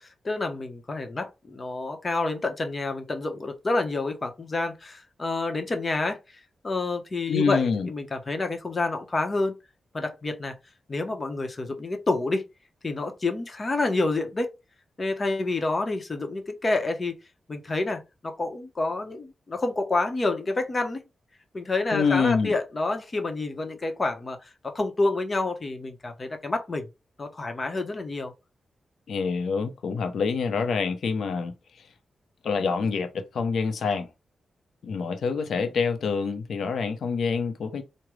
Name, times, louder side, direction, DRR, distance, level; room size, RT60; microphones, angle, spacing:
voice 1, 0.0-6.2 6.6-9.5 9.9-10.6 10.9-12.4 12.8-14.5 15.0-17.2 17.5-21.0 21.5-26.9 27.2-28.3, left 2 dB, 35° left, 0.9 m, -28 dB
voice 2, 7.3-7.9 21.9-22.5 29.1-31.5 32.4-34.1 34.8-37.8, left 5 dB, 75° left, 0.7 m, -26 dB
5.0 x 2.2 x 3.1 m
cardioid pair, 85°, 0 cm